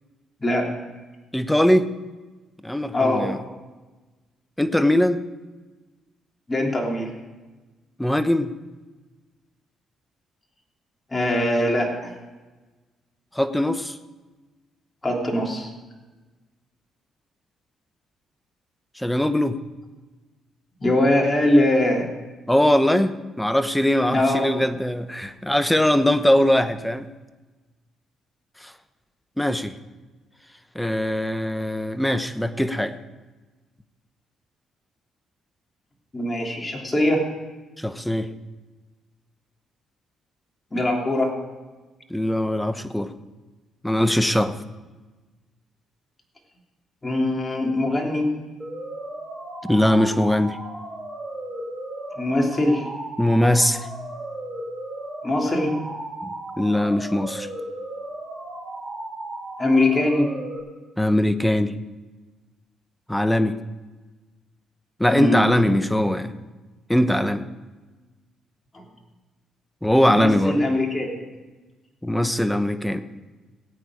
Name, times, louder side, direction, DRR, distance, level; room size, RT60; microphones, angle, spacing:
voice 1, 0.4-0.7 2.9-3.3 6.5-7.1 11.1-12.1 15.0-15.7 20.8-22.1 24.1-24.5 36.1-37.2 40.7-41.3 47.0-48.3 52.2-52.9 55.2-55.7 59.6-60.3 65.1-65.8 68.7-68.8 70.0-71.2, left 1 dB, 20° left, 0 dB, 3.1 m, -22 dB
voice 2, 1.3-1.9 2.6-3.4 4.6-5.2 8.0-8.5 13.3-14.0 19.0-19.6 22.5-27.1 28.6-28.7 29.4-29.8 30.7-33.0 37.8-38.3 42.1-43.1 43.8-44.6 49.6-50.6 53.2-53.9 56.6-57.5 61.0-61.8 63.1-63.6 65.0-66.3 66.9-67.4 69.8-70.6 72.0-73.0, left 1 dB, 5° left, 10 dB, 0.9 m, -21 dB
sound 1, 48.6-60.6, right 1 dB, 15° right, 4.7 m, -35 dB
18.5 x 8.7 x 4.9 m, 1.2 s
cardioid pair, 90°, 0 cm